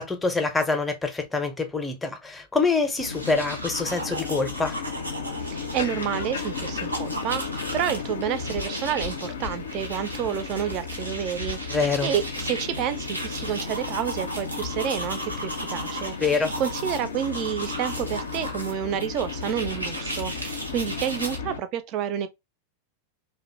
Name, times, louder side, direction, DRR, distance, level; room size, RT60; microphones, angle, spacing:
voice 1, 0.0-4.8 11.7-12.1 16.2-16.5, left 4 dB, 10° left, 0.5 m, -25 dB
sound 1, 3.0-21.6, left 6 dB, 65° left, 0.4 m, -35 dB
sound 2, 3.0-21.4, right 1 dB, 85° right, 0.6 m, -36 dB
voice 2, 5.5-16.1 16.6-22.3, right 10 dB, 40° right, 0.4 m, -29 dB
2.5 x 2.1 x 2.6 m
figure-of-eight pair, 90°, 0 cm